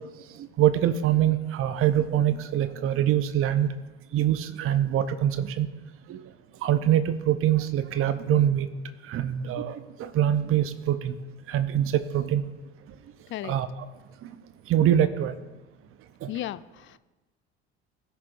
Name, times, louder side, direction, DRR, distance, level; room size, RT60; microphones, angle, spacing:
voice 1, 0.4-3.7 4.1-5.7 6.1-6.3 6.6-8.7 9.1-11.1 11.5-12.4 13.4-13.9 14.2-14.3 14.7-15.3 16.2-16.3, right 11 dB, 40° right, 11 dB, 0.8 m, -24 dB
voice 2, 16.3-17.0, left 13 dB, 35° left, 16 dB, 0.5 m, -34 dB
20.0 x 6.8 x 2.6 m, 1.1 s
figure-of-eight pair, 60°, 35 cm